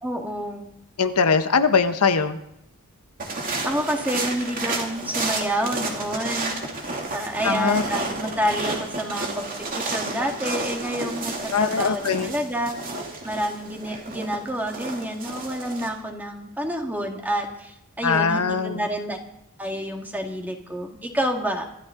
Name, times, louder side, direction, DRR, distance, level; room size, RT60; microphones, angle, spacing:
voice 1, 0.0-0.7 3.6-6.5 7.1-12.7 13.2-19.2 19.6-21.6, right 1 dB, 10° right, 2 dB, 1.8 m, -28 dB
voice 2, 1.0-2.4 7.4-7.8 11.5-12.3 18.0-18.9, left 5 dB, 80° left, 8 dB, 1.0 m, -21 dB
sound 1, 3.2-15.9, right 2 dB, 40° right, 2.6 m, -31 dB
25.0 x 13.0 x 3.8 m, 0.77 s
head